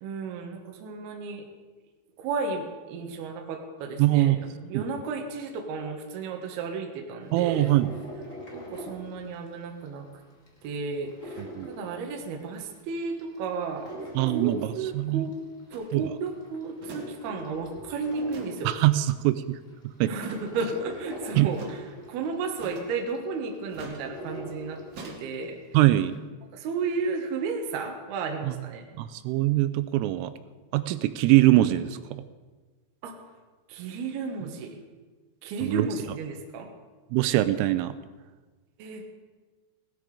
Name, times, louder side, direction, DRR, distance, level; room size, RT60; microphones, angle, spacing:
voice 1, 0.0-1.4 2.2-7.7 8.5-10.1 10.6-13.9 14.3-15.4 15.7-18.7 20.1-25.6 26.5-28.9 33.0-33.1 33.7-34.8 35.4-36.7 38.8-39.0, right 4 dB, 65° right, 3 dB, 2.9 m, -33 dB
voice 2, 4.0-4.4 4.7-4.8 7.3-7.9 11.4-11.7 14.2-14.7 14.9-15.3 15.9-16.1 18.7-19.6 20.0-20.1 21.4-21.5 25.7-26.2 28.4-28.5 29.0-30.3 30.7-32.0 35.6-35.9 37.1-37.9, right 16 dB, 85° right, 12 dB, 3.1 m, -22 dB
sound 1, 7.2-9.9 10.2-12.6 13.0-15.6 16.0-19.1 19.7-19.8 20.1-25.3 25.7-25.8, equal, 45° left, 1.0 m, -42 dB
sound 2, 15.7-15.9 16.8-17.1 17.3-17.4 18.2-18.6 20.2-20.5 21.5-21.8 22.6-23.0 23.7-24.0 24.9-25.2, right 2 dB, 45° right, 2.1 m, -42 dB
17.5 x 13.5 x 5.0 m, 1.3 s
omnidirectional pair, 5.9 m